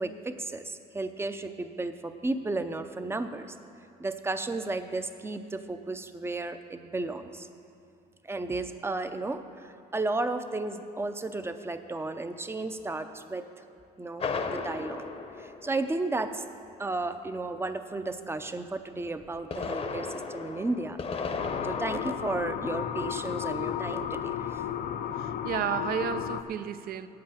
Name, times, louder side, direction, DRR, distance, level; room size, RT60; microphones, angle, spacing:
voice 1, 0.0-3.5 4.0-7.5 8.2-13.5 14.0-15.1 15.4-16.4 16.8-21.0 21.6-24.6, right 2 dB, 15° right, 0.6 m, -33 dB
sound 1, 14.2-16.3 19.2-22.0, left 4 dB, 35° left, 0.8 m, -35 dB
sound 2, 21.4-26.4, left 9 dB, 60° left, 0.5 m, -33 dB
voice 2, 25.2-27.1, right 9 dB, 60° right, 0.5 m, -32 dB
8.5 x 7.7 x 8.6 m
cardioid pair, 110°, 17 cm